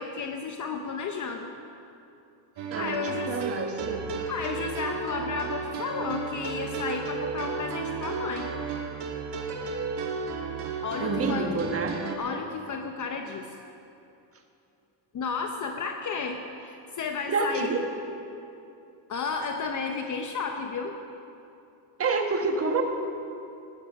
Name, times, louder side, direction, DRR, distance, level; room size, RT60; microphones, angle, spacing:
voice 1, 0.0-1.5 2.8-3.4 4.3-8.5 10.8-11.6 12.2-13.6 15.1-17.7 19.1-20.9, left 5 dB, 35° left, 4 dB, 0.8 m, -32 dB
sound 1, 2.6-12.2, right 5 dB, 55° right, 1.7 m, -33 dB
voice 2, 2.7-4.1 11.0-12.0 17.3-17.8 22.0-22.8, right 4 dB, 25° right, 4 dB, 1.4 m, -28 dB
17.0 x 12.5 x 5.3 m, 2.8 s
cardioid pair, 160°, 50 cm